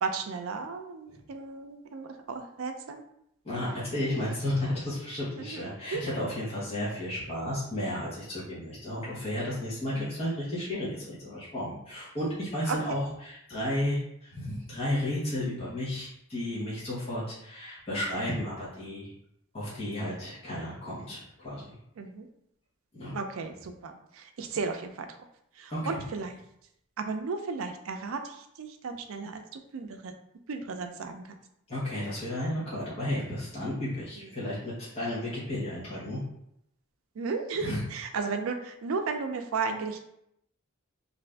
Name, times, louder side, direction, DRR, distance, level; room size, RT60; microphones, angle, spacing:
voice 1, 0.0-3.0 5.4-6.0 9.9-10.1 12.7-13.0 22.0-22.3 23.1-25.1 25.6-26.4 27.0-30.1 30.5-31.3 37.2-40.0, right 4 dB, 80° right, 6 dB, 0.4 m, -34 dB
voice 2, 3.4-19.1 19.5-21.8 22.9-23.1 25.7-26.0 31.7-36.2 37.6-37.8, left 1 dB, 30° left, -8 dB, 1.0 m, -33 dB
2.6 x 2.5 x 3.3 m, 0.76 s
head